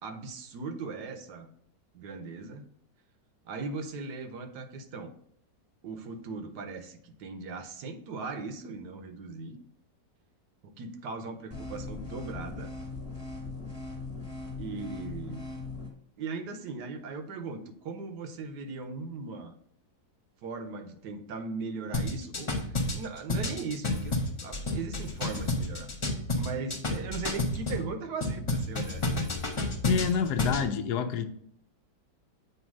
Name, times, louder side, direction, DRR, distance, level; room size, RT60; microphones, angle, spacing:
voice 1, 0.0-1.5 1.9-2.7 3.4-5.1 5.8-9.6 10.6-12.7 14.6-15.4 16.2-19.5 20.4-25.9 26.3-29.1, right 4 dB, 75° right, 7 dB, 1.3 m, -38 dB
sound 1, 11.5-15.9, left 3 dB, 10° left, 1.4 m, -39 dB
sound 2, 21.9-27.8 28.2-30.7, left 2 dB, 25° left, 0.6 m, -30 dB
voice 2, 29.8-31.3, left 7 dB, 75° left, 8 dB, 1.2 m, -28 dB
7.8 x 2.8 x 6.1 m, 0.66 s
omnidirectional pair, 1.8 m